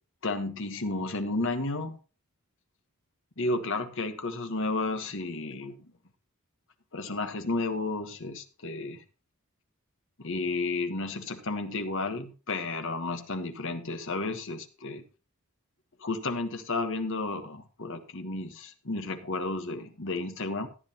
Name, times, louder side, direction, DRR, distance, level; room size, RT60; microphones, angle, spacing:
voice 1, 0.2-2.0 3.4-5.8 6.9-9.0 10.2-15.0 16.0-20.7, left 2 dB, 60° left, 7 dB, 1.3 m, -32 dB
14.0 x 10.0 x 2.9 m, 0.35 s
head